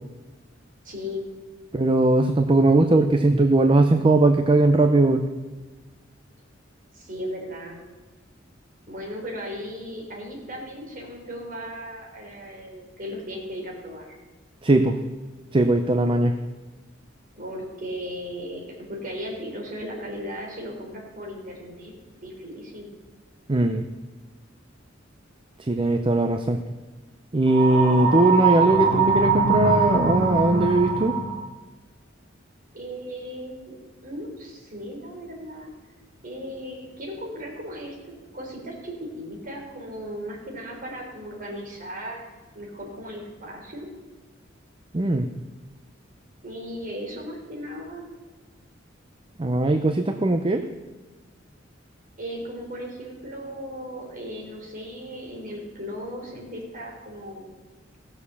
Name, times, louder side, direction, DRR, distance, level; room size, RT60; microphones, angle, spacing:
voice 1, 0.8-1.3 6.9-7.8 8.9-14.1 17.4-21.9 22.2-22.9 32.7-33.8 34.0-35.7 36.2-42.3 42.5-43.9 46.4-48.0 52.2-57.5, equal, 45° right, -1 dB, 3.9 m, -36 dB
voice 2, 1.7-5.2 14.6-15.0 15.5-16.3 23.5-23.9 25.6-26.6 27.3-31.2 44.9-45.3 49.4-50.6, right 2 dB, 25° right, 6 dB, 0.6 m, -19 dB
sound 1, 27.5-31.4, right 4 dB, 80° right, 1.7 m, -22 dB
17.0 x 6.7 x 7.0 m, 1.3 s
head